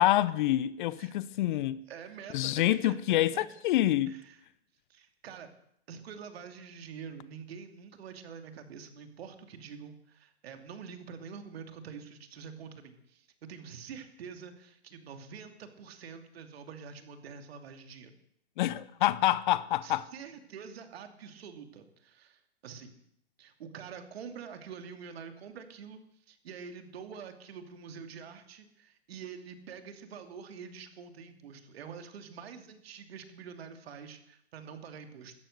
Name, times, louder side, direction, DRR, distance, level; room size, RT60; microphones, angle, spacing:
voice 1, 0.0-1.8 2.3-4.2 18.6-20.1, left 14 dB, 45° left, 0.7 m, -27 dB
voice 2, 1.9-3.5 4.1-4.4 4.9-5.5 5.9-18.1 19.8-23.0 23.4-26.0 26.3-35.3, right 6 dB, 60° right, 2.7 m, -46 dB
16.0 x 13.5 x 6.6 m
hypercardioid pair, 120°, 34 cm